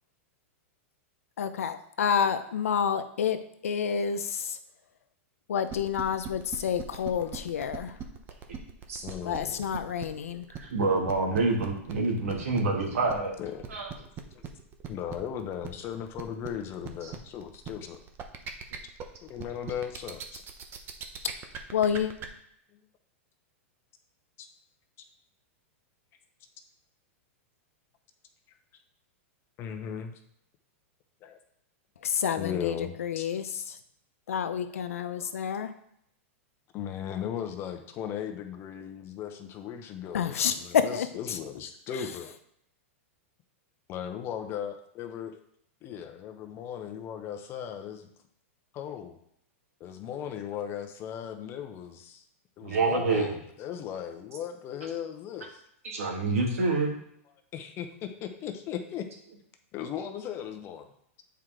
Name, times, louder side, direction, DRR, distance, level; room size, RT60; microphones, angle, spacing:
voice 1, 1.4-4.6 5.5-8.0 9.2-10.5 21.7-22.1 32.0-33.8 34.3-35.7 40.1-41.4, left 7 dB, 90° left, 10 dB, 0.7 m, -29 dB
sound 1, 5.7-22.3, right 8 dB, 30° right, 0.8 m, -40 dB
voice 2, 9.0-9.7 13.4-14.1 14.3-14.4 14.9-18.0 19.2-20.4 24.4-24.5 29.6-30.2 31.2-31.4 32.4-33.2 35.2-35.3 36.7-42.3 43.9-45.3 45.8-48.1 48.7-49.2 49.8-52.2 52.6-55.6 57.5-59.0 59.7-60.9, left 9 dB, 35° left, 5 dB, 0.9 m, -37 dB
voice 3, 10.6-13.3 13.7-13.9 52.6-53.3 55.8-56.9, right 3 dB, 90° right, 0 dB, 2.4 m, -27 dB
8.2 x 4.6 x 3.8 m, 0.72 s
hypercardioid pair, 135°, 7 cm